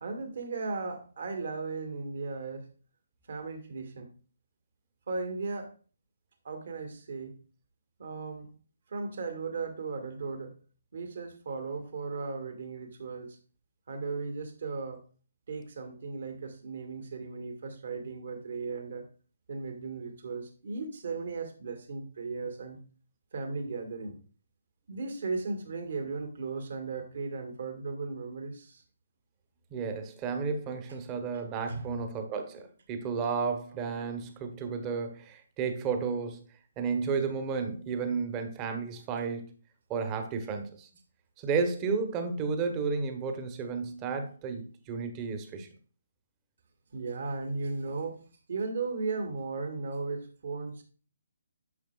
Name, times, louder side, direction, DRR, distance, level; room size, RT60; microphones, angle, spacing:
voice 1, 0.0-2.7 3.3-4.1 5.1-5.7 6.4-7.4 8.0-8.5 8.9-10.5 10.9-13.4 13.9-15.0 15.5-19.1 19.5-22.8 23.3-24.2 24.9-28.8 31.7-32.0 46.9-48.2 48.5-50.8, right 4 dB, 55° right, 1.9 m, -36 dB
voice 2, 29.7-36.4 36.8-39.4 39.9-40.9 41.4-45.7, right 5 dB, 20° right, 1.2 m, -32 dB
9.6 x 6.9 x 2.4 m
figure-of-eight pair, 140°, 0 cm